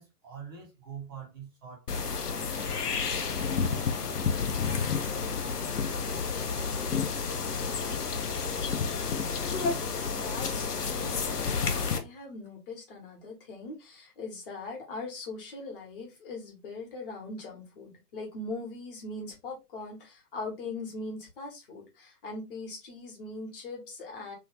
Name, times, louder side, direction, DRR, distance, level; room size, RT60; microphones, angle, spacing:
voice 1, 0.0-2.6, right 7 dB, 15° right, 0.6 m, -45 dB
sound 1, 1.9-12.0, left 5 dB, 70° left, 0.8 m, -30 dB
voice 2, 10.1-24.4, left 3 dB, 35° left, 1.2 m, -41 dB
3.1 x 2.3 x 3.1 m
figure-of-eight pair, 130°, 48 cm